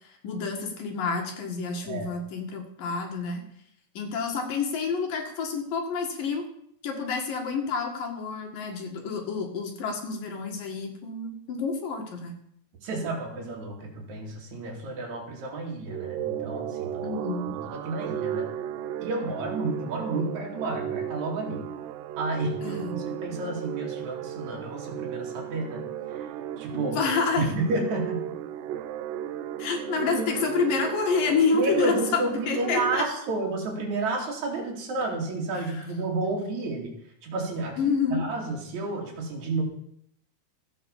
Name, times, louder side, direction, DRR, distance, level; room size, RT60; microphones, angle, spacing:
voice 1, 0.0-3.4 3.9-6.4 6.8-12.4 17.0-17.5 22.6-23.0 26.7-27.5 29.6-33.0 35.5-35.8 37.8-38.2, left 5 dB, 60° left, 3 dB, 3.2 m, -28 dB
voice 2, 12.8-17.1 17.5-18.5 19.0-21.6 22.2-26.3 26.6-27.0 27.4-28.3 30.2-30.3 31.5-36.9 37.2-37.8 38.1-39.6, right 2 dB, 45° right, -1 dB, 3.9 m, -31 dB
sound 1, 15.9-33.0, right 10 dB, 80° right, 2.9 m, -35 dB
13.5 x 8.6 x 7.2 m, 0.71 s
omnidirectional pair, 4.8 m